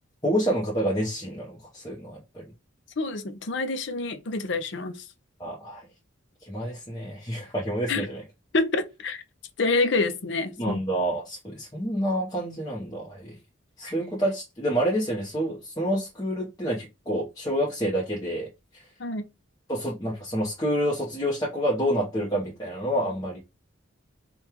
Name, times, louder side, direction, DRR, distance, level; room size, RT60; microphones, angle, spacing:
voice 1, 0.2-2.4 5.4-5.8 6.4-8.2 10.6-13.3 13.8-18.5 18.7-18.8 19.7-23.4, equal, 20° left, 0.9 m, -28 dB
voice 2, 3.0-5.0 7.9-8.1 8.5-9.2 9.6-10.8 19.0-19.2, left 3 dB, 60° left, 0.6 m, -27 dB
5.2 x 2.3 x 2.9 m
head